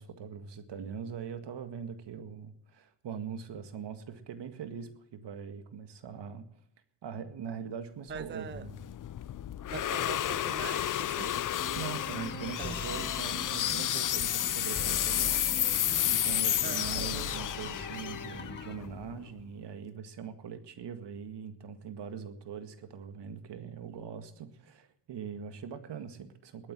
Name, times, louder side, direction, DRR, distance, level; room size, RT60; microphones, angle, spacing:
voice 1, 0.0-6.5 7.0-8.8 11.7-26.7, right 7 dB, 65° right, 1.9 m, -42 dB
voice 2, 8.1-8.6 9.7-11.4 12.6-12.7 16.6-17.3, right 6 dB, 25° right, 0.6 m, -42 dB
sound 1, 8.2-19.4, left 11 dB, 45° left, 0.6 m, -31 dB
sound 2, 11.6-18.7, left 2 dB, 25° left, 1.9 m, -43 dB
20.0 x 8.8 x 7.5 m
cardioid pair, 85°, 46 cm